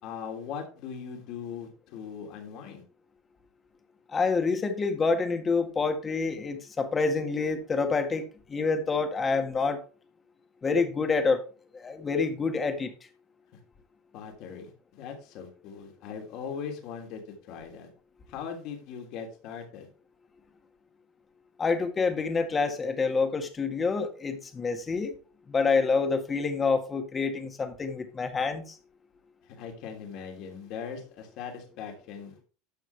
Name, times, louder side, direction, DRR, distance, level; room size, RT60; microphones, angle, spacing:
voice 1, 0.0-2.8 14.1-17.9 18.3-19.9 29.5-32.4, left 7 dB, 55° left, 3.0 m, -40 dB
voice 2, 4.1-9.8 10.6-11.4 11.7-12.9 21.6-25.1 25.5-28.8, left 4 dB, 25° left, 1.7 m, -27 dB
12.0 x 6.4 x 3.4 m
supercardioid pair, 105°, 0 cm